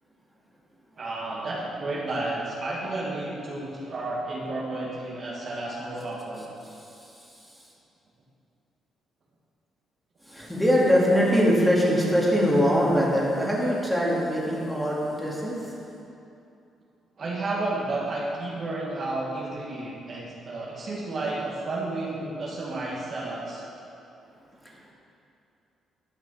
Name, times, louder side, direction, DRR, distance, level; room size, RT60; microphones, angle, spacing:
voice 1, 1.0-6.5 17.2-23.6, right 2 dB, 45° right, -4 dB, 1.8 m, -32 dB
voice 2, 6.8-7.3 10.2-15.8 24.7-24.9, equal, ahead, -5 dB, 2.3 m, -23 dB
11.5 x 6.1 x 5.6 m, 2.7 s
cardioid pair, 90°, 0 cm